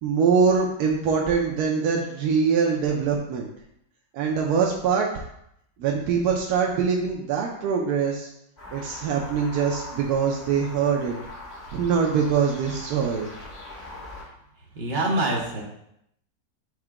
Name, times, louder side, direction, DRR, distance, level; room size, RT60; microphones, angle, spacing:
voice 1, 0.0-3.5 4.1-5.1 5.8-8.3 8.7-11.1 11.7-13.3, right 6 dB, 70° right, -1 dB, 1.0 m, -23 dB
sound 1, 8.6-14.2, left 2 dB, 40° left, 1.3 m, -41 dB
voice 2, 14.7-15.6, right 1 dB, 40° right, -2 dB, 0.7 m, -25 dB
4.8 x 2.1 x 4.6 m, 0.76 s
omnidirectional pair, 1.8 m